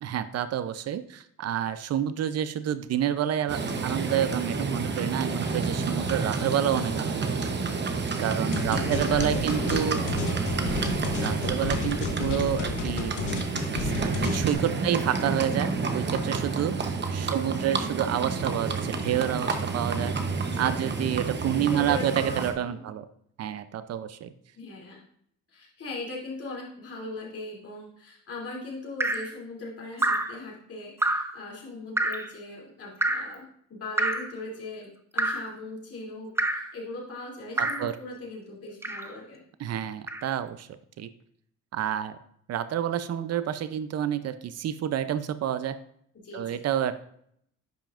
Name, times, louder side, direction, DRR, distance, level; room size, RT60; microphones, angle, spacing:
voice 1, 0.0-7.6 8.2-10.0 11.2-13.1 13.8-20.1 20.6-23.1 23.4-24.3 37.6-37.9 39.6-40.7 41.0-41.1 41.7-42.2 42.5-45.7 46.3-46.9, right 10 dB, 55° right, 12 dB, 0.6 m, -29 dB
Livestock farm animals working animals, 3.5-22.5, right 4 dB, 35° right, 1.0 m, -30 dB
sound 1, 8.5-14.5, left 4 dB, 75° left, 1.1 m, -32 dB
voice 2, 8.7-10.7 14.8-15.1 20.4-20.9 21.6-22.8 24.5-25.0 25.5-39.4 46.2-46.6, left 2 dB, 50° left, -3 dB, 3.0 m, -40 dB
Drip, 29.0-29.3 30.0-30.4 31.0-31.4 32.0-32.3 33.0-33.3 34.0-34.3 35.2-35.5 36.4-36.7 37.6-37.9 38.8-39.2 40.1-40.2, right 1 dB, 10° right, 0.7 m, -27 dB
10.0 x 5.6 x 2.5 m, 0.68 s
cardioid pair, 90°, 30 cm